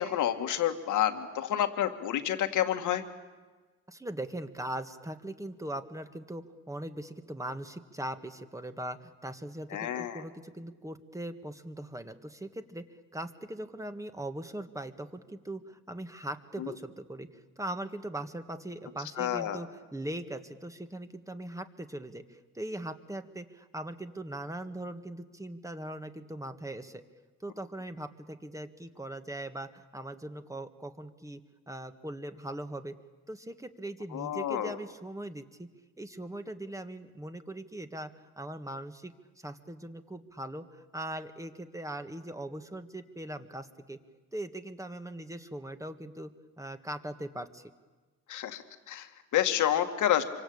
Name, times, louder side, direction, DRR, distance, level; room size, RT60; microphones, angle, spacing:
voice 1, 0.0-3.0 9.7-10.2 16.6-16.7 19.2-19.6 34.1-34.8 48.3-50.2, left 11 dB, 80° left, 7 dB, 2.1 m, -29 dB
voice 2, 3.9-12.8 13.1-27.0 27.4-31.4 31.7-32.9 33.3-35.7 36.0-44.0 44.3-47.7, right 1 dB, 10° right, 8 dB, 1.8 m, -40 dB
26.5 x 25.0 x 8.7 m, 1.3 s
cardioid pair, 90°, 30 cm